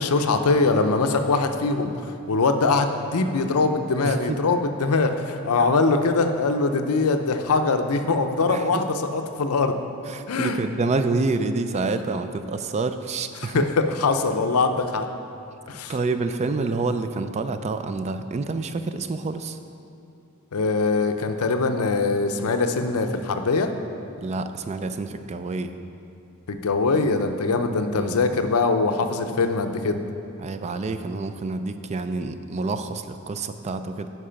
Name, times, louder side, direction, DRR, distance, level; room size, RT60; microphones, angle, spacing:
voice 1, 0.0-1.9 2.3-9.8 10.3-10.6 13.5-15.1 15.7-15.9 20.5-23.7 26.5-30.0, left 3 dB, 80° left, 7 dB, 0.6 m, -22 dB
voice 2, 4.0-4.4 8.5-8.8 10.1-13.6 15.9-19.6 24.2-25.8 27.9-28.2 30.4-34.1, right 3 dB, 30° right, 9 dB, 0.3 m, -28 dB
10.0 x 4.7 x 5.7 m, 2.6 s
head